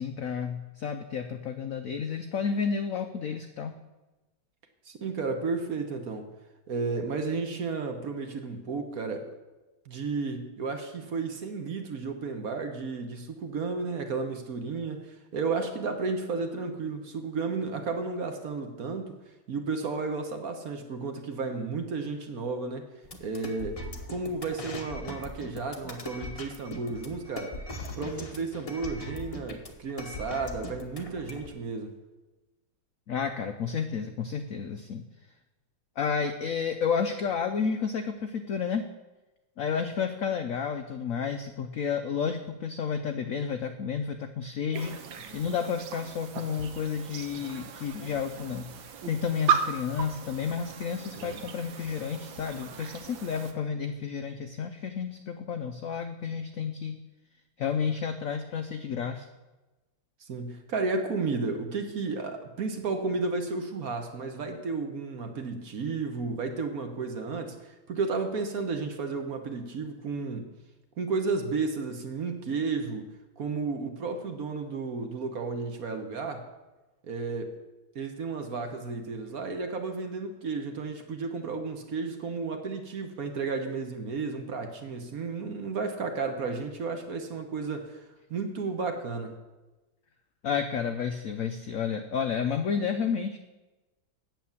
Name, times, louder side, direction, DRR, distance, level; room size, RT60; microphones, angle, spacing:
voice 1, 0.0-3.8 33.1-35.0 36.0-38.9 39.6-45.0 45.3-48.7 49.0-57.0 57.6-59.3 90.4-93.4, left 6 dB, 75° left, 7 dB, 0.7 m, -31 dB
voice 2, 4.9-6.3 6.7-9.3 9.9-19.1 19.5-22.9 23.2-23.8 24.1-27.6 28.0-31.9 51.2-51.4 60.2-70.5 71.0-73.1 73.4-76.4 77.0-77.6 77.9-89.4, right 4 dB, 55° right, 5 dB, 1.3 m, -33 dB
sound 1, 23.0-31.5, left 2 dB, 30° left, 0.6 m, -40 dB
sound 2, 44.7-53.5, right 6 dB, 75° right, 1.7 m, -35 dB
9.1 x 7.6 x 7.1 m, 1.1 s
omnidirectional pair, 2.2 m